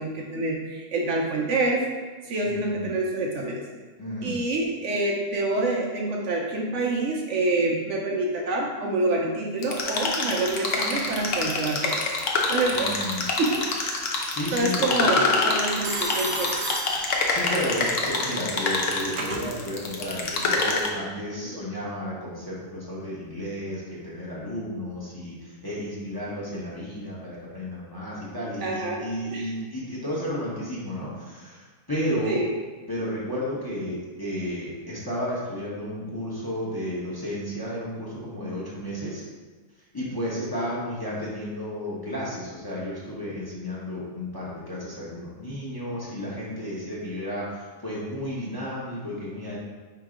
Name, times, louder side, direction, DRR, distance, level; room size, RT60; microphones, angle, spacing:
voice 1, 0.0-1.8 2.2-3.7 4.2-12.1 12.5-12.9 13.4-13.6 14.5-16.5 21.3-21.6 28.6-29.5 32.3-32.5 40.5-40.6, right 2 dB, 65° right, -1 dB, 0.8 m, -27 dB
voice 2, 2.4-2.9 4.0-4.4 12.7-13.2 14.3-15.3 17.3-32.4 32.9-39.2 39.9-49.6, equal, 20° left, -7 dB, 0.7 m, -32 dB
sound 1, 9.6-20.9, left 3 dB, 65° left, 1.0 m, -26 dB
Telephone, 12.2-12.8 15.8-17.7 18.7-19.5, right 3 dB, 90° right, 1.1 m, -34 dB
3.7 x 2.9 x 4.8 m, 1.3 s
omnidirectional pair, 1.4 m